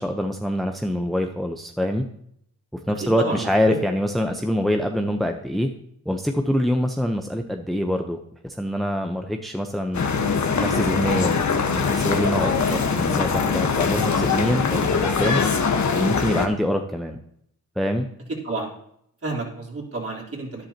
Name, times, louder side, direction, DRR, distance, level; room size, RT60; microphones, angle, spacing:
voice 1, 0.0-2.0 2.9-5.7 6.1-8.2 8.4-10.1 10.6-11.4 11.7-12.6 12.9-15.4 15.9-17.2 17.8-18.1, equal, ahead, 4 dB, 0.9 m, -25 dB
voice 2, 3.2-3.8 12.7-12.8 18.4-18.7 19.2-20.7, right 2 dB, 35° right, -2 dB, 3.9 m, -30 dB
sound 1, 9.9-16.5, left 5 dB, 50° left, 1.4 m, -22 dB
12.0 x 10.5 x 3.0 m, 0.71 s
supercardioid pair, 50°, 38 cm